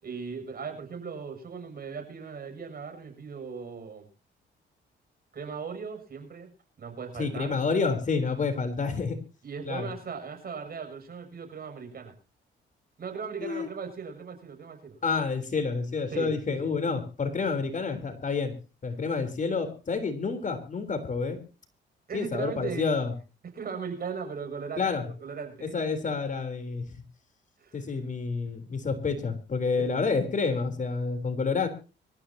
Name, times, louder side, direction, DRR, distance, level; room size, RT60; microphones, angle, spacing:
voice 1, 0.0-4.1 5.3-6.5 6.8-7.6 9.4-12.1 13.0-15.0 16.1-16.7 22.1-22.9 23.5-24.9 25.2-25.8 27.6-27.8 29.8-29.9, right 5 dB, 50° right, 6 dB, 7.0 m, -38 dB
voice 2, 7.2-9.2 9.7-9.9 13.4-13.7 15.0-18.5 18.8-21.4 22.1-23.1 24.8-25.0 25.7-26.9 27.7-31.7, left 4 dB, 40° left, 9 dB, 3.6 m, -29 dB
25.0 x 13.5 x 2.8 m, 0.33 s
cardioid pair, 90°, 20 cm